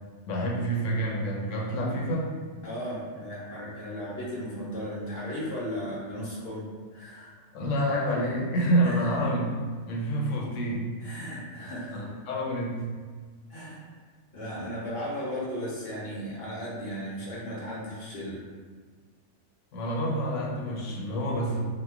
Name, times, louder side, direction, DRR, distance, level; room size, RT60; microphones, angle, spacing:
voice 1, 0.3-2.3 7.5-9.6 9.9-10.9 11.9-12.9 19.7-21.6, right 1 dB, 85° left, -2 dB, 1.0 m, -28 dB
voice 2, 2.6-6.6 6.9-7.3 8.8-9.2 11.0-12.1 13.5-13.8 14.3-18.4, equal, 55° left, -7 dB, 1.0 m, -36 dB
3.0 x 2.2 x 3.4 m, 1.5 s
omnidirectional pair, 1.3 m